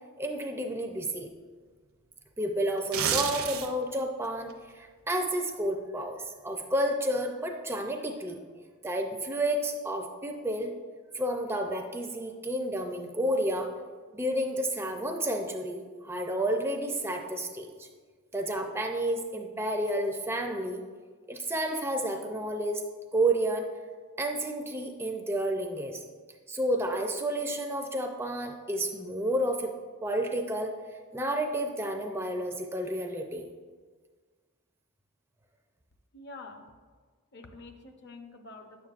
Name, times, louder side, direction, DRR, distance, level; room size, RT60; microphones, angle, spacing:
voice 1, 0.2-1.3 2.4-8.4 8.8-10.7 11.1-13.7 14.1-17.9 18.3-20.8 21.3-22.8 23.1-23.7 24.2-26.0 26.5-29.7 30.0-30.7 31.1-33.5, right 1 dB, 10° right, 3 dB, 0.4 m, -31 dB
sound 1, 2.8-3.9 4.3-4.5, right 8 dB, 70° right, 0.7 m, -29 dB
voice 2, 36.1-36.7 37.3-38.9, left 3 dB, 50° left, 5 dB, 0.7 m, -47 dB
9.5 x 7.2 x 2.4 m, 1.5 s
head